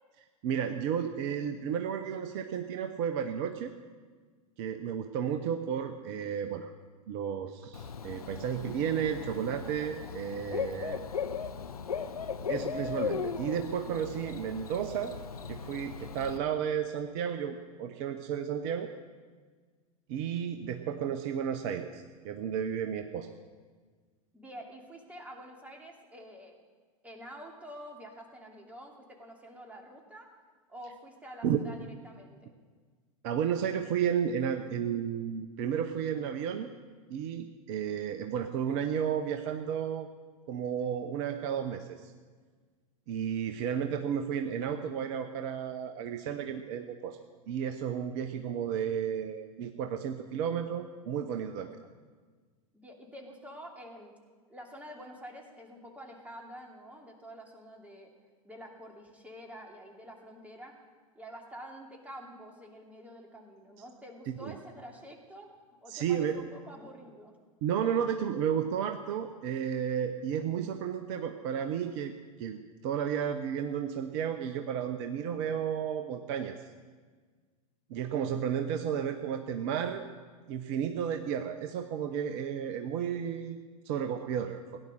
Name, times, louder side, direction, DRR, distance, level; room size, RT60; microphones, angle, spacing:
voice 1, 0.4-3.7 4.6-6.7 7.1-11.0 12.5-15.1 15.5-18.9 20.1-23.3 31.4-31.6 33.2-36.7 37.1-40.1 40.5-42.1 43.1-47.2 47.5-51.7 64.4-64.5 65.9-66.4 67.6-72.1 72.4-72.6 72.8-76.6 77.9-80.1 80.5-84.8, right 8 dB, 45° right, 7 dB, 0.9 m, -32 dB
Bird / Cricket, 7.7-16.4, left 6 dB, 80° left, 0.7 m, -37 dB
voice 2, 24.3-26.6 27.0-30.3 30.7-32.5 52.7-54.1 54.5-58.1 58.4-60.7 61.1-65.5 65.8-67.3, equal, 10° right, 0 dB, 2.8 m, -48 dB
17.5 x 9.9 x 6.6 m, 1.5 s
figure-of-eight pair, 90°, 19 cm